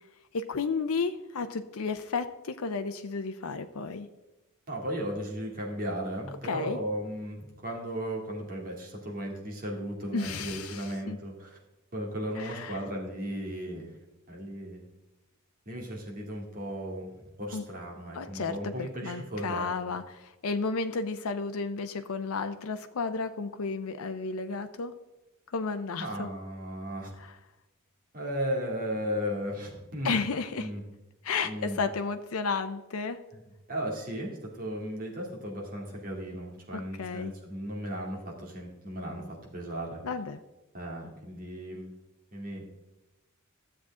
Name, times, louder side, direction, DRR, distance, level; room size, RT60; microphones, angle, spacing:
voice 1, 0.3-4.1 6.4-6.8 10.1-11.2 12.4-12.9 17.5-17.6 18.1-24.9 25.5-26.3 27.2-27.4 30.0-30.7 31.2-33.2 36.7-37.3 40.0-40.4, left 4 dB, 70° left, 8 dB, 0.6 m, -33 dB
voice 2, 4.7-11.6 11.9-13.9 14.3-14.8 15.7-19.7 26.0-27.1 28.1-30.2 30.6-30.8 31.4-31.9 33.3-33.4 33.7-39.2 39.5-40.0 40.7-41.9 42.3-42.6, equal, 40° right, -2 dB, 2.6 m, -35 dB
13.0 x 7.5 x 3.7 m, 1.0 s
head